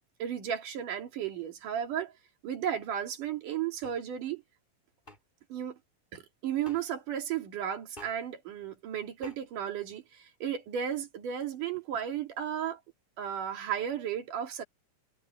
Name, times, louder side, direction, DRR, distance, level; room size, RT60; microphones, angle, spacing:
voice 1, 0.2-2.1 2.4-4.4 5.5-5.8 6.1-10.0 10.4-12.8 13.2-14.6, right 9 dB, 75° right, 3.9 m, -34 dB
sound 1, 3.8-4.0 5.0-5.2 6.6-6.8 7.9-8.2 9.2-9.4, left 1 dB, 15° left, 6.4 m, -49 dB
omnidirectional pair, 3.8 m